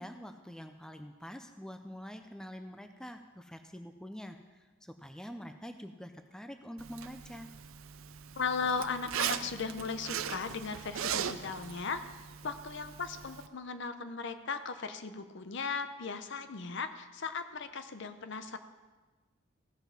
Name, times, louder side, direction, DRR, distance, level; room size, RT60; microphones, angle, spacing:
voice 1, 0.0-7.5, equal, 5° left, 7 dB, 0.4 m, -46 dB
Zipper (clothing), 6.8-13.5, right 8 dB, 80° right, 0.5 m, -39 dB
voice 2, 8.4-12.0 12.4-18.6, left 5 dB, 60° left, 10 dB, 0.6 m, -37 dB
16.0 x 5.8 x 5.7 m, 1.3 s
head